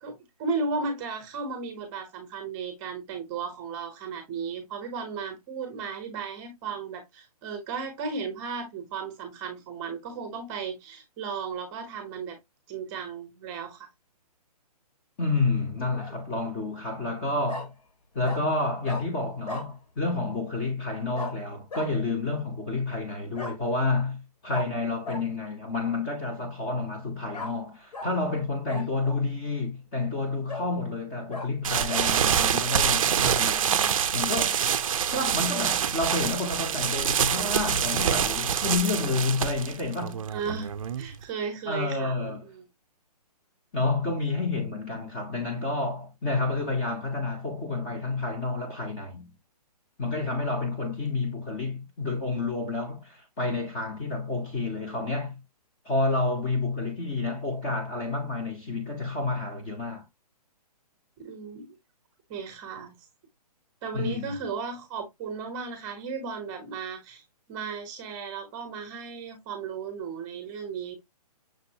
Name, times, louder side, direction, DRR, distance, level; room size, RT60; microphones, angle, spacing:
voice 1, 0.0-12.4 12.7-13.9 28.7-28.8 40.3-40.7 41.0-42.7 61.2-61.8 62.3-62.9 63.8-67.2 67.5-71.0, right 5 dB, 15° right, 0.8 m, -35 dB
voice 2, 15.2-17.7 18.1-34.6 35.1-40.2 41.7-42.5 43.7-49.3 50.0-55.4 55.8-60.1 63.9-64.3, left 3 dB, 20° left, 0.7 m, -29 dB
Bark, 15.8-16.2 17.5-17.7 18.2-18.4 18.8-19.0 19.5-19.7 21.1-21.3 21.7-21.9 23.3-23.6 24.5-24.7 25.0-25.2 27.3-27.5 27.9-28.1 28.7-29.3 29.8-29.9 30.5-30.7 31.3-31.5 31.9-32.1, left 2 dB, 80° left, 1.7 m, -36 dB
sound 1, 31.6-41.2, right 8 dB, 55° right, 0.4 m, -26 dB
6.2 x 2.6 x 2.7 m
hypercardioid pair, 165°, 20 cm